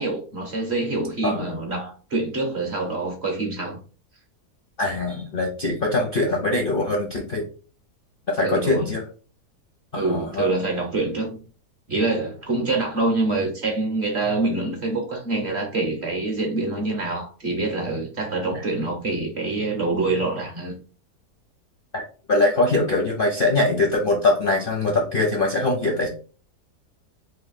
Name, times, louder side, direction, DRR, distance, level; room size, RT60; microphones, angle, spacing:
voice 1, 0.0-3.8 8.4-8.9 9.9-11.4 11.9-20.7, right 2 dB, 50° right, 0.9 m, -25 dB
voice 2, 4.8-7.4 8.3-9.0 9.9-10.5 18.5-18.6 21.9-26.1, left 2 dB, 55° left, 0.6 m, -22 dB
3.1 x 2.7 x 4.0 m
omnidirectional pair, 1.8 m